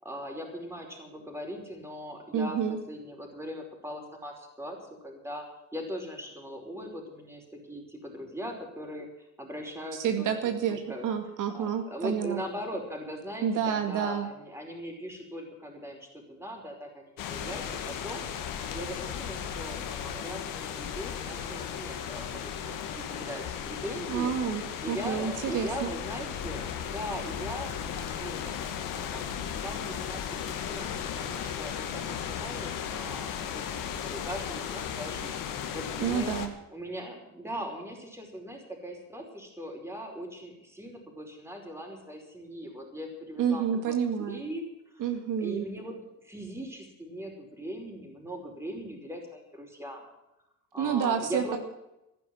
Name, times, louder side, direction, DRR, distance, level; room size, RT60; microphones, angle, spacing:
voice 1, 0.0-4.8 5.0-5.4 5.7-9.1 9.4-11.0 11.5-18.3 18.7-28.5 28.9-36.3 36.7-44.0 44.3-45.0 45.4-50.0 50.7-51.6, equal, 10° right, 1 dB, 5.0 m, -40 dB
voice 2, 2.3-2.8 9.9-12.4 13.4-14.3 24.1-25.9 36.0-36.5 43.4-44.4 45.0-45.7 50.8-51.6, right 8 dB, 75° right, 5 dB, 2.1 m, -29 dB
sound 1, 17.2-36.5, left 8 dB, 85° left, 2.2 m, -36 dB
14.5 x 11.0 x 7.8 m, 0.88 s
cardioid pair, 120°, 32 cm